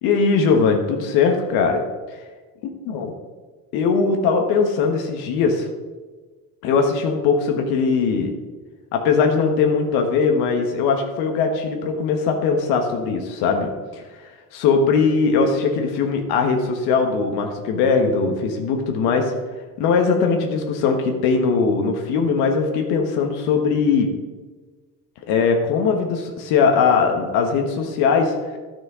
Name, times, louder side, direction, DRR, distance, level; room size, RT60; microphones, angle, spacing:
voice 1, 0.0-1.8 2.8-3.1 3.7-5.7 6.6-8.3 8.9-14.0 14.5-19.3 19.8-24.1 25.3-28.3, left 5 dB, 80° left, 4 dB, 1.4 m, -20 dB
11.0 x 6.1 x 5.0 m, 1.3 s
supercardioid pair, 100°, 38 cm